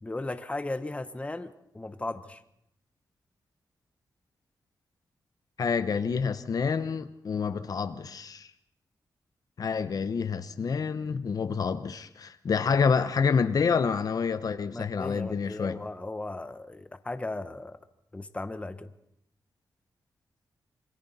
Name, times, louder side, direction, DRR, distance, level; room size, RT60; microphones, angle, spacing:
voice 1, 0.0-2.4 14.7-17.8 18.1-18.9, left 2 dB, 15° left, 1.1 m, -36 dB
voice 2, 5.6-8.5 9.6-15.8, left 5 dB, 55° left, 0.9 m, -28 dB
27.5 x 23.0 x 4.2 m
wide cardioid pair, 105°, 7 cm